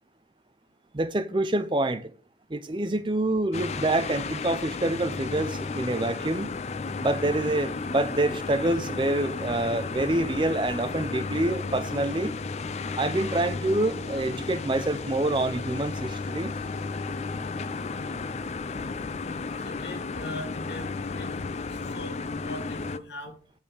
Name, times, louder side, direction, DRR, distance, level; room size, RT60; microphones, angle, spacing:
voice 1, 0.9-2.1 2.5-6.5 7.0-12.3 13.0-16.5, right 2 dB, 25° right, 0.5 m, -26 dB
sound 1, 3.5-23.0, left 4 dB, 35° left, 0.4 m, -33 dB
voice 2, 19.5-21.4 21.7-23.3, left 1 dB, 70° left, 1.9 m, -40 dB
8.4 x 5.4 x 5.3 m
head